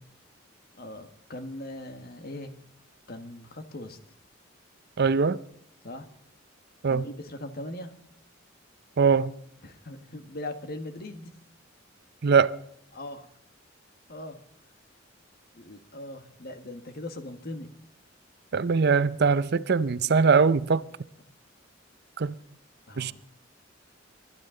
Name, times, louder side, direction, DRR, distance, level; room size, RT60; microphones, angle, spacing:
voice 1, 0.8-2.5 3.1-4.0 5.8-6.1 6.9-7.9 9.6-11.3 12.9-13.3 14.1-14.4 15.5-17.8 22.9-23.1, left 1 dB, 50° left, 1.6 m, -40 dB
voice 2, 5.0-5.4 6.8-7.1 9.0-9.3 12.2-12.5 18.5-20.8 22.2-22.4 23.0-23.1, right 5 dB, 55° right, 0.6 m, -22 dB
24.5 x 12.0 x 3.9 m
head